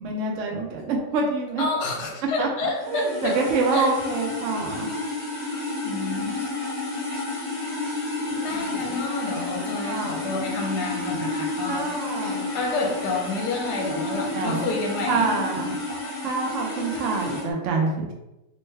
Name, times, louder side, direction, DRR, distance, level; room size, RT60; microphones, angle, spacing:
voice 1, 0.0-1.6 2.4-4.9 8.5-8.8 9.8-10.2 11.7-12.5 14.3-14.7 15.1-15.7 16.2-18.1, right 3 dB, 65° right, 0 dB, 0.8 m, -26 dB
voice 2, 1.6-3.4 3.7-3.9 5.8-6.4 8.3-11.9 12.1-15.3 15.9-16.0, left 3 dB, 70° left, 0 dB, 1.2 m, -29 dB
sound 1, 2.8-17.5, left 2 dB, 15° left, 0.5 m, -31 dB
3.1 x 2.1 x 3.3 m, 0.95 s
omnidirectional pair, 1.8 m